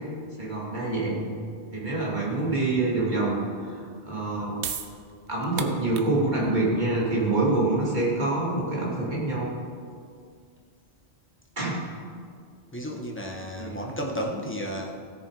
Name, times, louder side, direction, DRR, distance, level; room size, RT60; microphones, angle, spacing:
voice 1, 0.4-1.3 1.7-4.5 5.3-9.5 11.6-11.8 13.5-13.8, right 2 dB, 45° right, -5 dB, 2.8 m, -26 dB
sound 1, 4.6-10.9, right 7 dB, 90° right, 1.0 m, -40 dB
voice 2, 12.7-15.0, equal, 10° left, 0 dB, 1.4 m, -33 dB
16.0 x 6.9 x 4.9 m, 2.2 s
omnidirectional pair, 1.1 m